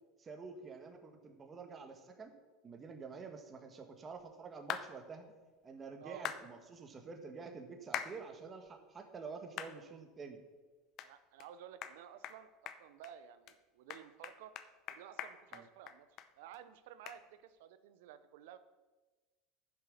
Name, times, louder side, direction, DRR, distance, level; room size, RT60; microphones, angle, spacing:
voice 1, 0.2-2.3 2.6-5.2 5.6-10.4 15.5-15.6, right 5 dB, 25° right, 5 dB, 1.5 m, -48 dB
sound 1, 4.7-4.9 6.2-6.4 7.9-8.1 8.7-8.8 9.6-9.7 10.2-10.3 11.0-11.1 11.4-11.5 11.8-12.0 12.2-12.4 12.7-13.1 13.5-13.6 13.9-16.3 16.5-16.6 17.1-17.2, left 10 dB, 50° left, 0.8 m, -41 dB
voice 2, 11.0-14.5 14.9-16.1 16.4-18.6, right 10 dB, 80° right, 13 dB, 0.8 m, -54 dB
10.5 x 7.1 x 6.6 m, 1.2 s
supercardioid pair, 115°, 0 cm